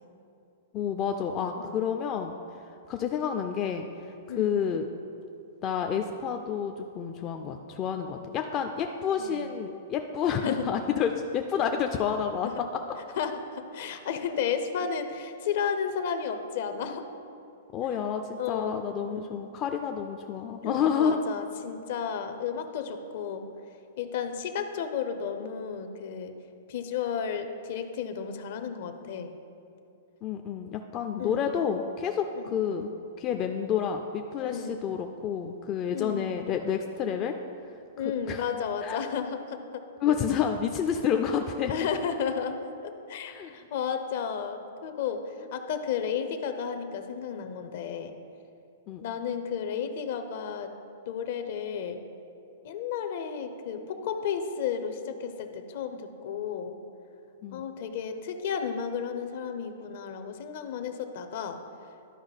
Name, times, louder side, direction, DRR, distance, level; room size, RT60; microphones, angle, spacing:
voice 1, 0.7-2.3 2.9-3.9 4.3-4.9 5.6-12.5 13.9-14.0 17.7-21.2 30.2-32.9 33.2-37.3 38.3-38.5 38.8-39.0 40.0-41.7 43.3-43.6 48.9-49.0 57.4-57.6, left 7 dB, 30° left, 4 dB, 0.3 m, -29 dB
voice 2, 13.2-17.1 18.4-19.4 20.6-23.5 24.0-26.3 26.7-29.3 31.2-31.5 32.3-32.6 34.4-34.8 35.9-36.3 38.0-40.2 41.7-48.2 49.0-50.7 51.1-52.0 52.6-56.8 57.5-61.6, left 7 dB, 55° left, 8 dB, 0.7 m, -33 dB
11.5 x 4.8 x 4.0 m, 2.6 s
hypercardioid pair, 145°, 0 cm